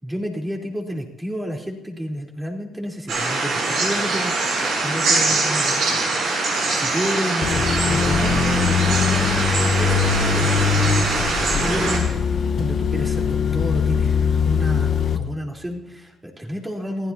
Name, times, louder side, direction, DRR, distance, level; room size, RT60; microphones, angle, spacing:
voice 1, 0.0-6.0 6.4-10.8 11.4-14.9 15.1-17.1, equal, 15° right, 0 dB, 4.0 m, -30 dB
sound 1, 3.1-12.0, right 3 dB, 75° right, 7.9 m, -23 dB
sound 2, 7.4-15.2, left 6 dB, 60° left, 1.3 m, -21 dB
28.0 x 16.0 x 2.9 m, 1.1 s
cardioid pair, 90°, 0 cm